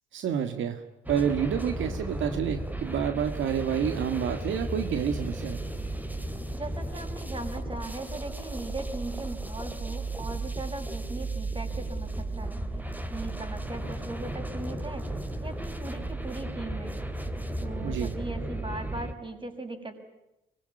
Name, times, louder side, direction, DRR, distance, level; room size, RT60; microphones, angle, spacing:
voice 1, 0.1-5.6 17.8-18.1, right 8 dB, 75° right, 8 dB, 1.8 m, -29 dB
sound 1, 1.1-19.1, right 1 dB, 10° right, 3.2 m, -34 dB
voice 2, 6.5-12.6 13.1-15.0 15.4-17.1 17.6-20.0, right 2 dB, 25° right, 5 dB, 6.6 m, -39 dB
24.5 x 23.0 x 9.9 m, 0.89 s
cardioid pair, 90°, 20 cm